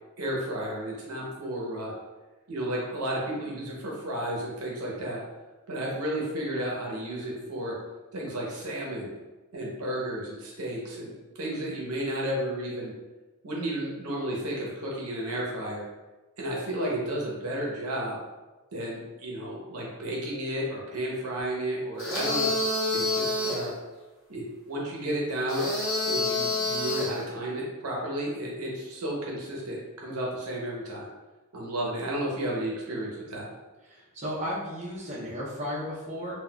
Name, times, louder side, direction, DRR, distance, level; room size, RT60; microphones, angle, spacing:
voice 1, 0.2-1.9 2.5-5.2 5.7-7.8 8.1-9.1 9.5-12.9 13.4-15.8 16.4-18.2 18.7-22.5 22.9-23.7 24.3-25.7 26.1-31.1 31.5-33.5, right 1 dB, 75° right, -3 dB, 0.8 m, -32 dB
sound 1, 22.0-23.7 25.5-27.2, left 2 dB, 60° left, 1.0 m, -28 dB
voice 2, 33.8-36.3, equal, 30° right, -6 dB, 0.7 m, -34 dB
3.9 x 2.4 x 2.3 m, 1.2 s
head